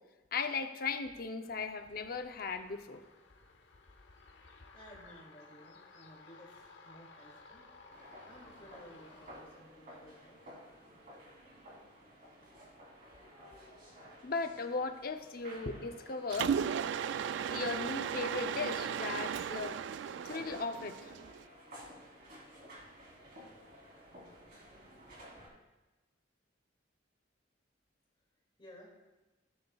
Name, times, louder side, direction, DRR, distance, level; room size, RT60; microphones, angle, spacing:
voice 1, 0.3-3.0 14.2-16.6 17.5-19.8 20.2-21.1, left 4 dB, 50° left, 7 dB, 0.7 m, -37 dB
sound 1, 1.4-9.4, left 3 dB, 75° left, 1.0 m, -57 dB
voice 2, 4.7-7.6 8.2-10.6 12.4-12.6 24.8-24.9 28.6-29.0, equal, 30° left, -2 dB, 2.4 m, -56 dB
sound 2, 7.9-25.5, equal, 50° right, 3.3 m, -55 dB
Mechanisms, 16.3-21.4, right 7 dB, 70° right, 0.3 m, -36 dB
17.0 x 9.6 x 2.3 m, 1.1 s
head